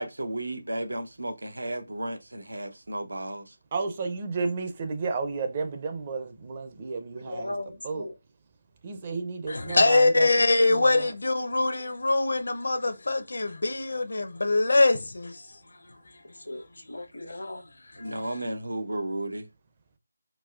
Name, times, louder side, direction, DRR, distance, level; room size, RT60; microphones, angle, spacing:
voice 1, 0.0-3.5 18.0-19.4, right 1 dB, 85° right, 0.7 m, -33 dB
voice 2, 3.7-7.5 7.8-8.0 8.8-10.3 10.7-11.1, right 4 dB, 30° right, 0.5 m, -32 dB
voice 3, 7.2-8.2 16.2-17.7, left 1 dB, 85° left, 0.9 m, -38 dB
voice 4, 9.5-15.6 15.9-16.0 18.0-18.2, left 2 dB, 70° left, 0.6 m, -23 dB
4.0 x 2.3 x 2.3 m
figure-of-eight pair, 160°, 0 cm